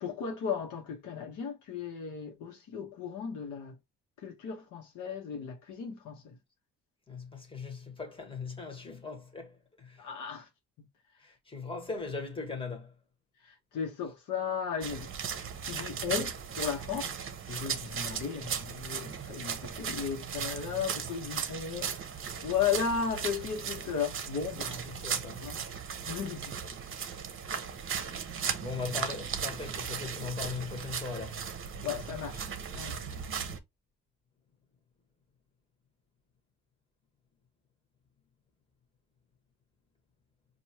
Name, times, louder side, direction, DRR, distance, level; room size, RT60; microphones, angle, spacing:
voice 1, 0.0-3.8 4.2-6.4 10.0-10.5 13.4-15.1 15.6-17.1 17.5-22.1 22.4-24.9 25.4-25.6 26.1-26.5 31.8-32.4 32.7-33.0, left 7 dB, 80° left, 1.2 m, -35 dB
voice 2, 7.1-10.1 11.2-12.9 24.8-25.5 28.6-31.5, left 4 dB, 15° left, 1.4 m, -39 dB
sound 1, 14.8-33.6, right 7 dB, 45° right, 0.8 m, -37 dB
4.6 x 2.6 x 2.9 m
cardioid pair, 90°, 30 cm